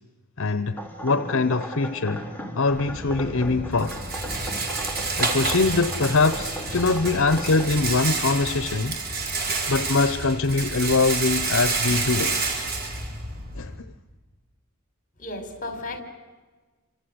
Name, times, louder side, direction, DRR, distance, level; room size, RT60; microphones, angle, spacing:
voice 1, 0.4-2.3 2.5-4.0 5.2-9.0 9.5-12.4 13.6-13.7, left 3 dB, 65° left, 0.9 m, -23 dB
sound 1, 0.8-7.7, equal, 10° left, 3.9 m, -36 dB
Rattle, 2.7-13.8, right 3 dB, 45° right, 5.1 m, -29 dB
voice 2, 6.7-7.5 9.4-9.7 15.2-16.0, left 2 dB, 40° left, 4.6 m, -37 dB
28.5 x 25.5 x 8.0 m
head